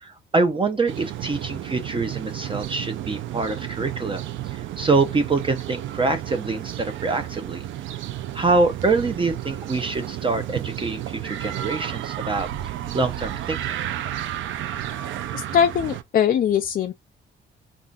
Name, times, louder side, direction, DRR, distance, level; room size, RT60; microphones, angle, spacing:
voice 1, 0.0-7.6 8.3-12.5 12.9-13.8, right 3 dB, 25° right, 0.6 m, -25 dB
sound 1, 0.9-16.0, right 12 dB, 75° right, 0.5 m, -32 dB
voice 2, 15.3-16.9, left 8 dB, 45° left, 0.4 m, -21 dB
3.8 x 2.5 x 2.4 m
cardioid pair, 90°, 20 cm